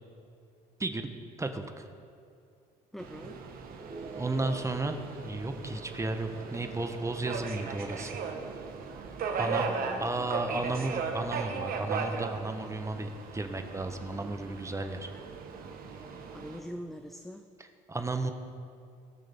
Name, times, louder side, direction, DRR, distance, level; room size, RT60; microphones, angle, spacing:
voice 1, 1.4-1.9 4.1-8.2 9.4-15.1 17.6-18.3, right 2 dB, 15° right, 7 dB, 1.0 m, -34 dB
voice 2, 2.9-3.4 9.4-10.3 16.3-17.4, equal, ahead, 6 dB, 0.5 m, -43 dB
Subway metro underground, 3.0-16.6, right 5 dB, 60° right, 1.2 m, -38 dB
sound 1, 3.8-11.3, right 3 dB, 35° right, 1.4 m, -47 dB
18.5 x 6.4 x 3.6 m, 2.5 s
supercardioid pair, 75°, 17 cm